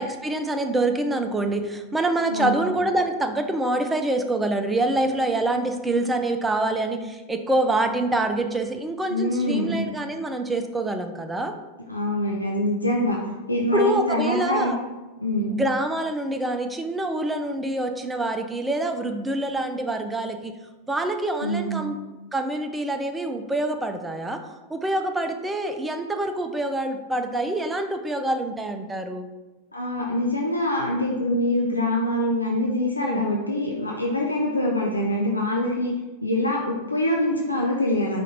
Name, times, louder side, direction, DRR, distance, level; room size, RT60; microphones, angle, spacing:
voice 1, 0.0-11.5 12.8-13.0 13.7-14.8 15.5-20.5 20.9-22.0 22.3-24.4 24.7-29.3 33.0-33.2, right 2 dB, 10° right, 6 dB, 0.4 m, -26 dB
voice 2, 9.1-9.9 11.9-13.2 13.5-14.7 15.2-15.6 21.4-21.8 29.7-35.9 36.2-38.2, left 1 dB, 85° left, -1 dB, 0.5 m, -24 dB
5.1 x 2.5 x 4.1 m, 1.2 s
figure-of-eight pair, 90°, 0 cm